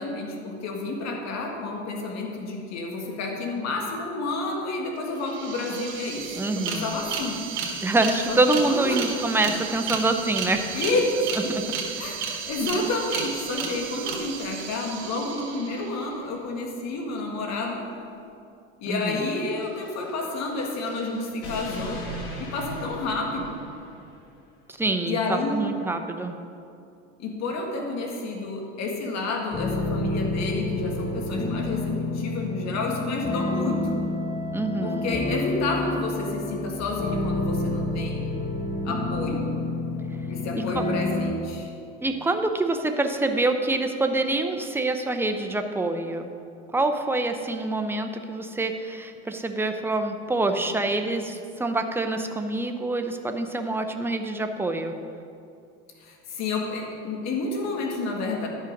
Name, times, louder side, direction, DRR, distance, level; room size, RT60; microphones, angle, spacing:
voice 1, 0.0-7.4 8.3-9.1 10.7-11.3 12.0-17.8 18.8-22.0 22.4-23.6 25.1-25.6 27.2-33.9 34.8-38.2 38.8-39.5 40.3-41.7 50.7-50.8 56.0-58.5, left 2 dB, 50° left, 1 dB, 1.8 m, -30 dB
sound 1, 5.0-5.1 5.2-16.0, right 6 dB, 70° right, 1.7 m, -33 dB
voice 2, 6.3-6.9 7.8-10.8 11.5-11.6 18.8-19.2 24.7-26.4 34.5-35.1 40.7-40.8 42.0-46.3 46.7-54.9, right 2 dB, 5° right, 6 dB, 0.6 m, -26 dB
sound 2, 19.5-24.2, equal, 75° left, 2.1 m, -39 dB
sound 3, 29.5-41.3, left 2 dB, 25° left, 1.3 m, -29 dB
11.5 x 5.6 x 5.2 m, 2.5 s
supercardioid pair, 105°, 35 cm